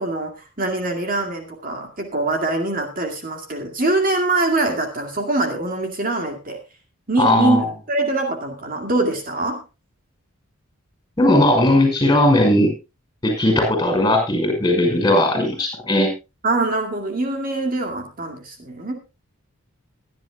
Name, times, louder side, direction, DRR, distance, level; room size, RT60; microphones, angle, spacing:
voice 1, 0.0-6.6 7.1-9.6 16.4-19.0, right 2 dB, 40° right, 3 dB, 2.2 m, -23 dB
voice 2, 7.2-7.7 11.2-12.7 13.2-16.1, left 1 dB, 20° left, 4 dB, 5.9 m, -17 dB
22.5 x 10.5 x 2.3 m, 0.27 s
head